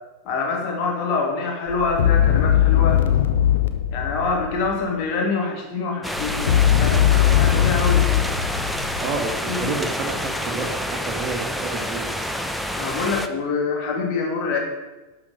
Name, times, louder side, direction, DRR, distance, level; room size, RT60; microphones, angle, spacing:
voice 1, 0.2-3.0 3.9-8.2 9.5-9.7 12.8-14.6, left 4 dB, 40° left, 1 dB, 2.8 m, -25 dB
sound 1, 1.7-4.9 6.2-9.5, left 10 dB, 60° left, 0.9 m, -20 dB
sound 2, 6.0-13.3, equal, ahead, 0.8 m, -28 dB
voice 2, 9.0-12.1, right 3 dB, 35° right, 2 dB, 2.2 m, -30 dB
12.0 x 5.8 x 7.9 m, 1.1 s
figure-of-eight pair, 90°, 0 cm